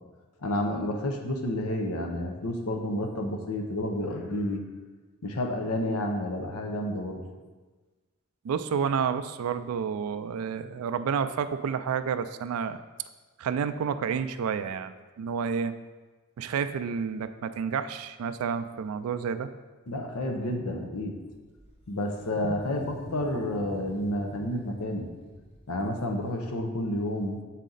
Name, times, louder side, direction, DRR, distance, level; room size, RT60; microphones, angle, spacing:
voice 1, 0.4-4.6 5.2-7.2 19.9-21.2 21.9-25.1 25.7-27.4, left 1 dB, 85° left, 3 dB, 0.7 m, -30 dB
voice 2, 8.4-12.8 13.4-15.7 16.4-19.5, right 6 dB, 80° right, 10 dB, 0.3 m, -30 dB
Wild animals, 21.3-26.3, left 1 dB, 25° left, 0.9 m, -44 dB
7.4 x 4.1 x 3.9 m, 1.3 s
head